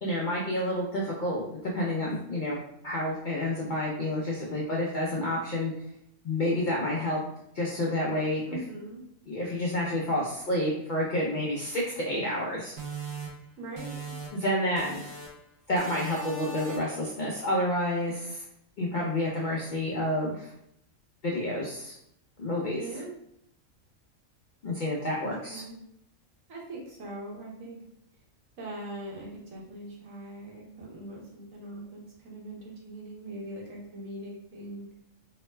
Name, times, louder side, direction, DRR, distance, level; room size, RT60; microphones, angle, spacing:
voice 1, 0.0-2.6 2.8-5.7 6.2-7.2 7.5-8.4 9.3-12.7 14.3-15.0 15.7-18.4 18.8-20.5 21.2-21.9 22.4-22.8 24.6-25.6, left 1 dB, 65° left, -4 dB, 0.5 m, -29 dB
voice 2, 8.5-9.0 13.6-14.1 22.7-23.1 25.5-25.8 26.5-27.8 28.6-34.9, right 1 dB, 90° right, -3 dB, 1.3 m, -41 dB
sound 1, 12.8-14.5 14.8-15.4 15.8-17.0, right 4 dB, 65° right, 0.4 m, -40 dB
3.0 x 2.1 x 3.1 m, 0.75 s
omnidirectional pair, 1.4 m